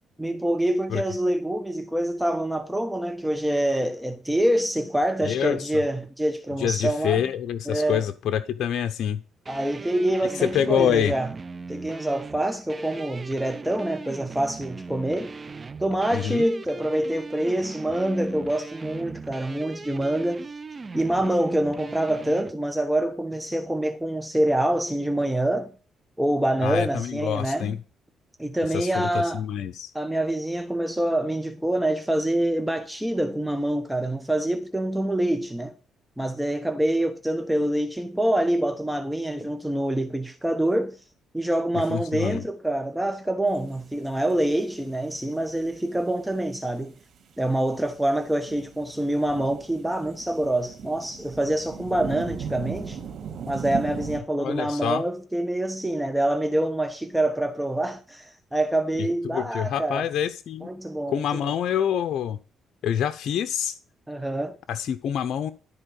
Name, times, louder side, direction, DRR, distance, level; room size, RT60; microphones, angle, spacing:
voice 1, 0.2-7.2 7.7-8.1 9.5-11.3 11.7-15.3 15.8-20.5 20.9-25.7 26.2-27.7 28.4-29.4 29.9-35.7 36.2-41.0 41.3-47.0 47.4-53.0 53.5-60.1 60.6-61.6 64.1-64.6, right 1 dB, 5° right, 1.1 m, -26 dB
voice 2, 5.2-5.7 6.6-9.2 10.4-11.1 16.1-16.5 26.6-27.8 28.7-29.9 41.9-42.4 54.4-55.0 59.2-60.7 61.1-62.4 62.8-63.8 64.7-65.5, left 9 dB, 70° left, 0.7 m, -26 dB
sound 1, 9.5-22.5, right 4 dB, 30° right, 0.6 m, -39 dB
sound 2, 43.5-44.7 45.0-45.1 45.5-45.8 46.4-46.6 46.9-47.0 47.3-54.2, right 7 dB, 65° right, 3.5 m, -37 dB
13.0 x 4.5 x 6.5 m
cardioid pair, 90°, 0 cm